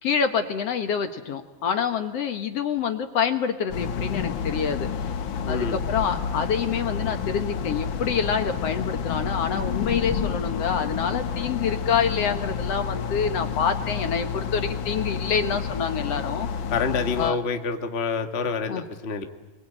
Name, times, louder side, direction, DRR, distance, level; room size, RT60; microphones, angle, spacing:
voice 1, 0.0-4.9 5.5-16.5 17.2-17.4 18.7-18.8, left 6 dB, 55° left, 7 dB, 2.0 m, -26 dB
sound 1, 3.7-17.3, left 7 dB, 75° left, 1.1 m, -29 dB
voice 2, 5.4-5.8 16.7-19.3, left 5 dB, 30° left, 5 dB, 1.3 m, -27 dB
29.5 x 23.0 x 8.9 m, 1.2 s
omnidirectional pair, 3.9 m